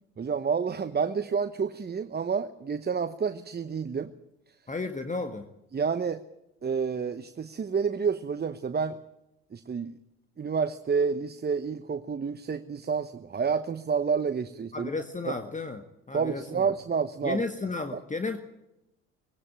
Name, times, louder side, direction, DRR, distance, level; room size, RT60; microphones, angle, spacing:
voice 1, 0.2-4.1 5.7-6.2 6.6-9.0 9.5-9.9 10.4-14.9 16.1-17.4 17.9-18.0, right 6 dB, 25° right, 10 dB, 1.0 m, -29 dB
voice 2, 4.7-5.5 14.7-16.7 17.2-18.4, left 3 dB, 20° left, 7 dB, 1.7 m, -33 dB
19.5 x 17.5 x 8.9 m, 0.89 s
hypercardioid pair, 60°, 37 cm